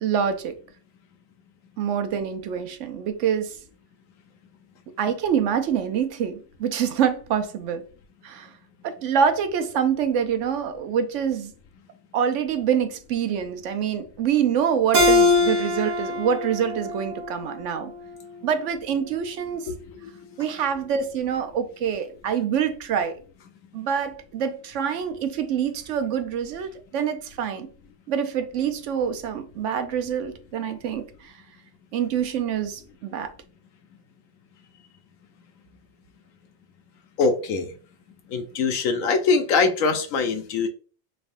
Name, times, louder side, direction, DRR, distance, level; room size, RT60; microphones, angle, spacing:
voice 1, 0.0-0.5 1.8-3.6 5.0-7.8 8.2-8.5 8.8-11.5 12.1-17.9 18.4-19.7 20.4-23.2 23.7-27.7 28.1-31.3 31.9-33.3, right 8 dB, 70° right, 0.9 m, -26 dB
Keyboard (musical), 14.9-18.2, left 2 dB, 85° right, 1.5 m, -23 dB
voice 2, 37.2-37.7 38.3-40.7, left 4 dB, 85° left, 1.1 m, -22 dB
4.3 x 3.3 x 2.5 m
omnidirectional pair, 1.4 m